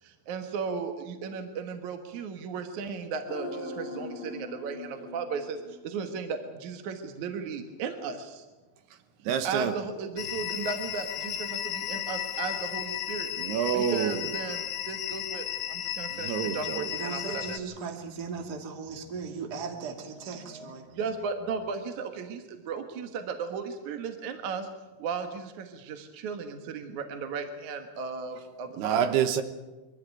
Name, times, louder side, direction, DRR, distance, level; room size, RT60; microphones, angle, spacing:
voice 1, 0.0-8.5 9.4-13.3 13.7-17.7 19.5-24.7 25.0-29.0, right 5 dB, 60° right, 2.3 m, -36 dB
sound 1, 3.3-6.6 6.8-6.9, left 2 dB, 30° left, 3.6 m, -41 dB
voice 2, 9.3-9.7 13.4-14.3 16.1-16.9 28.8-29.4, right 8 dB, 75° right, 3.0 m, -27 dB
sound 2, 10.2-17.6, left 12 dB, 70° left, 2.8 m, -34 dB
voice 3, 16.9-20.9, right 5 dB, 30° right, 2.0 m, -37 dB
24.0 x 14.5 x 9.2 m
omnidirectional pair, 4.8 m